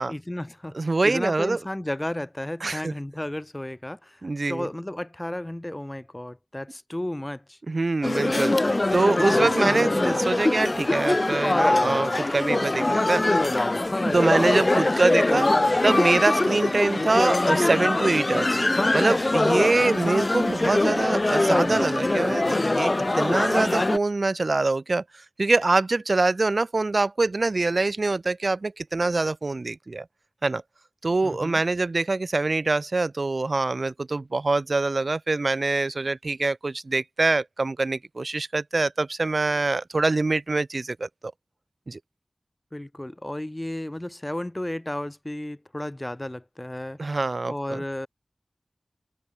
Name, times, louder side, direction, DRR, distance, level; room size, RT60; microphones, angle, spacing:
voice 1, 0.1-7.6 31.2-31.6 42.7-47.0 47.5-48.1, left 1 dB, 25° left, 3.5 m, -33 dB
voice 2, 0.7-1.6 2.6-2.9 4.2-4.7 7.7-13.2 14.0-18.6 18.9-25.0 25.4-30.0 30.4-30.6 31.0-41.1 41.9-42.0 47.0-47.8, right 3 dB, 70° right, 2.5 m, -24 dB
sound 1, 8.0-24.0, left 2 dB, 45° left, 2.9 m, -23 dB
wide cardioid pair, 45°, 0 cm